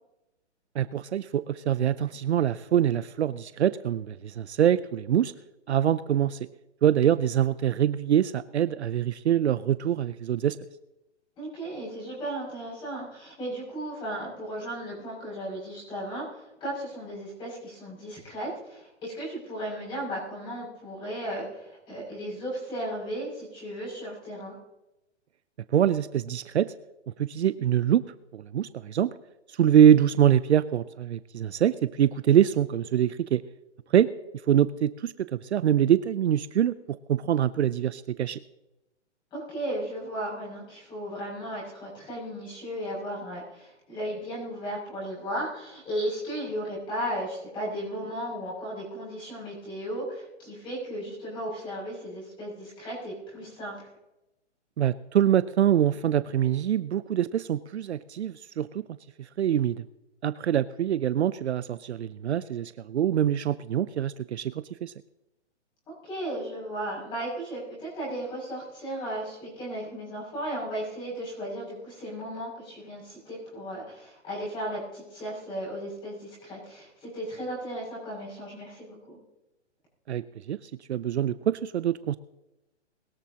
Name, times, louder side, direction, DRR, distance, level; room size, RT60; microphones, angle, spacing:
voice 1, 0.8-5.3 5.7-6.4 6.8-10.6 25.7-26.7 27.2-28.0 28.3-29.1 29.5-33.4 33.9-34.1 34.5-38.4 54.8-58.8 59.2-59.8 60.2-64.9 80.1-80.6 80.9-82.2, right 10 dB, 65° right, 15 dB, 0.6 m, -24 dB
voice 2, 11.4-24.6 39.3-53.9 65.9-79.2, right 1 dB, 15° left, -5 dB, 6.4 m, -35 dB
21.5 x 13.5 x 2.9 m, 0.95 s
hypercardioid pair, 170°, 36 cm